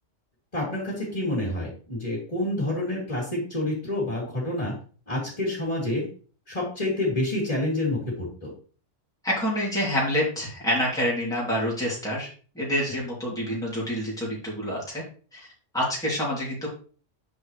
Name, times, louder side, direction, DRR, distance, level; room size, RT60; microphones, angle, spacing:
voice 1, 0.5-4.7 5.1-6.1 6.5-8.5, left 1 dB, 30° left, -5 dB, 3.3 m, -28 dB
voice 2, 9.2-12.3 12.5-15.0 15.3-15.5 15.7-16.7, equal, 5° left, -6 dB, 2.9 m, -27 dB
9.1 x 6.2 x 3.3 m, 0.40 s
omnidirectional pair, 1.3 m